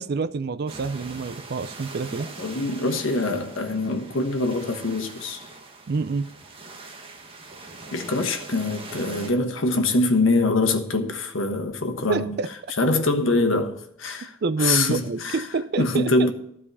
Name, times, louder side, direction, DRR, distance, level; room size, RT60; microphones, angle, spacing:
voice 1, 0.0-2.3 5.9-6.3 12.1-12.5 14.4-16.3, right 4 dB, 55° right, 0.4 m, -27 dB
sound 1, 0.7-9.3, right 3 dB, 30° right, 1.4 m, -42 dB
voice 2, 2.4-5.4 7.9-12.4 12.8-14.3 14.6-15.4 15.8-16.3, left 2 dB, 80° left, 1.3 m, -24 dB
12.5 x 4.9 x 8.2 m
head